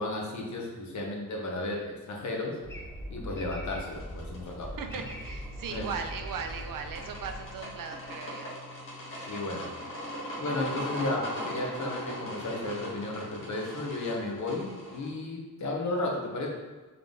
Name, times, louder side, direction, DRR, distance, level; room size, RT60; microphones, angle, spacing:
voice 1, 0.0-2.6 3.1-5.0 5.7-5.9 9.2-9.7 10.4-16.5, left 2 dB, 55° left, 0 dB, 0.9 m, -34 dB
sound 1, 2.6-8.0, equal, 10° left, 0.5 m, -41 dB
sound 2, 3.9-15.1, equal, 40° left, 1.2 m, -40 dB
sound 3, 4.8-14.6, left 2 dB, 40° right, 1.3 m, -54 dB
voice 2, 4.8-8.5, right 6 dB, 70° right, 5 dB, 0.5 m, -38 dB
3.8 x 3.5 x 3.6 m, 1.3 s
wide cardioid pair, 175°, 34 cm